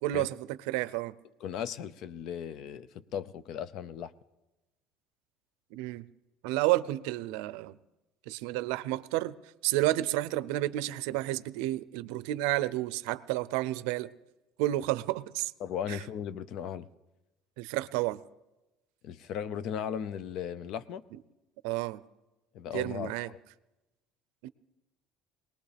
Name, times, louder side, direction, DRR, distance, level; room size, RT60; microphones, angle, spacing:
voice 1, 0.0-1.1 5.7-6.1 6.4-7.8 8.3-9.4 9.6-14.1 14.6-15.5 15.9-16.0 17.6-18.2 21.6-22.0 22.7-23.3 24.4-24.5, right 16 dB, 85° right, 0.5 m, -30 dB
voice 2, 1.4-4.1 15.6-16.9 19.0-21.0 22.5-23.4, left 8 dB, 55° left, 0.5 m, -37 dB
22.0 x 18.5 x 3.4 m
cardioid pair, 150°, 0 cm